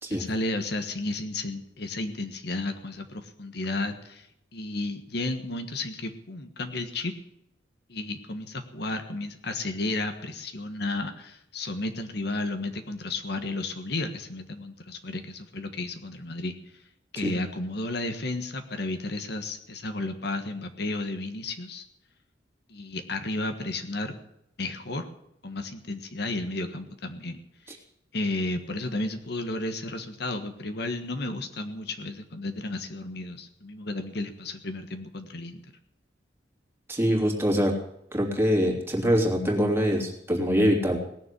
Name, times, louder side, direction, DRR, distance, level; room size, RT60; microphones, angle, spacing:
voice 1, 0.1-4.3 4.5-7.2 7.9-16.5 17.1-21.8 22.7-24.2 24.6-25.1 25.4-27.4 28.1-35.6, left 2 dB, 60° left, 7 dB, 1.5 m, -33 dB
voice 2, 36.9-37.7 38.1-41.0, equal, 15° right, 0 dB, 2.9 m, -24 dB
18.5 x 7.2 x 9.9 m, 0.78 s
head